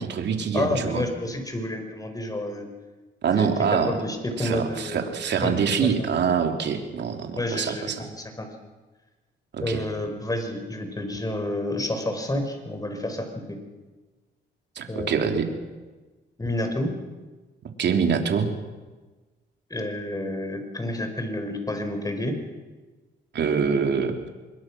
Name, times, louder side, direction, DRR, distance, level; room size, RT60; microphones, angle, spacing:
voice 1, 0.0-1.0 3.2-4.0 4.4-8.0 9.5-9.8 14.7-15.5 17.8-18.5 23.3-24.3, right 6 dB, 60° right, 4 dB, 3.2 m, -25 dB
voice 2, 0.5-2.7 3.4-5.1 5.4-5.5 5.8-5.9 7.3-8.5 9.6-13.6 14.9-15.2 16.4-16.9 19.7-22.4, left 1 dB, 20° left, 5 dB, 5.1 m, -29 dB
26.0 x 21.5 x 6.2 m, 1.3 s
cardioid pair, 90°, 20 cm